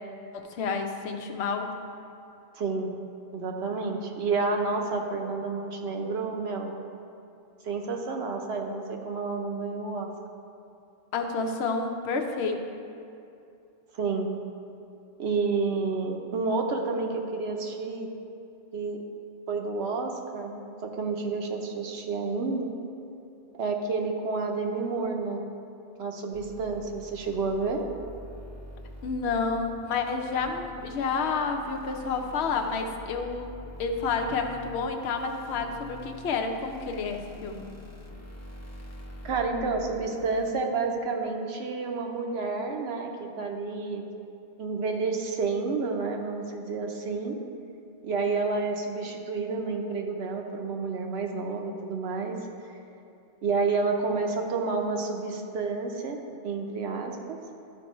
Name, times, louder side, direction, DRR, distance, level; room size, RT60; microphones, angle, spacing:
voice 1, 0.3-1.7 11.1-12.6 29.0-33.5 33.8-37.7, left 4 dB, 90° left, 4 dB, 0.9 m, -29 dB
voice 2, 2.5-2.9 3.3-6.7 7.6-10.1 13.9-14.3 15.2-18.1 18.7-19.0 19.5-22.7 23.5-25.5 26.0-27.8 39.2-44.0 44.6-47.4 48.0-52.4 53.4-56.2 56.4-57.4, right 4 dB, 85° right, 2 dB, 1.0 m, -30 dB
sound 1, 26.3-40.5, left 1 dB, 20° left, 0.5 m, -45 dB
12.0 x 4.6 x 3.0 m, 2.6 s
omnidirectional pair, 1.1 m